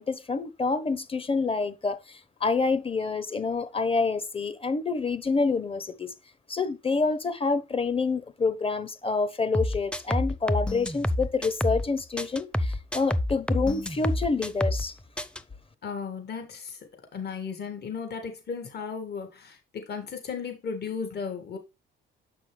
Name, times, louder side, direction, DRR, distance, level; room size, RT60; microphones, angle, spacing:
voice 1, 0.0-6.1 6.5-14.9, left 4 dB, 30° left, 1.1 m, -27 dB
sound 1, 9.5-11.9 12.2-14.9 15.2-15.4, left 1 dB, 5° left, 0.7 m, -28 dB
voice 2, 15.8-21.6, left 6 dB, 55° left, 2.4 m, -35 dB
7.4 x 6.1 x 3.4 m
cardioid pair, 90°, 20 cm